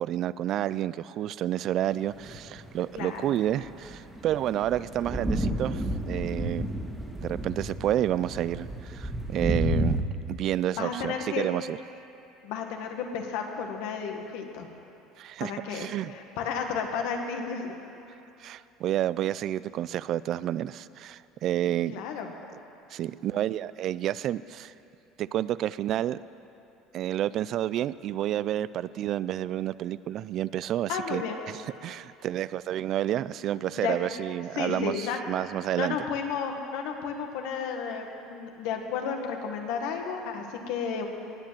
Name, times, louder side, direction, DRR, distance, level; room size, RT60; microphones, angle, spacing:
voice 1, 0.0-6.7 7.2-10.0 10.3-11.8 15.2-16.1 18.4-22.0 22.9-24.7 25.2-26.2 26.9-31.2 31.8-36.0, right 12 dB, 50° right, 18 dB, 0.3 m, -30 dB
sound 1, 2.2-2.7 3.6-10.0, equal, 5° right, 1.8 m, -31 dB
voice 2, 2.9-3.3 10.8-11.5 12.4-14.7 15.4-17.8 21.6-22.3 30.9-31.4 33.7-34.1 34.6-35.2 35.7-41.1, left 6 dB, 75° left, 4 dB, 1.7 m, -33 dB
19.5 x 7.3 x 7.6 m, 2.8 s
supercardioid pair, 115°, 0 cm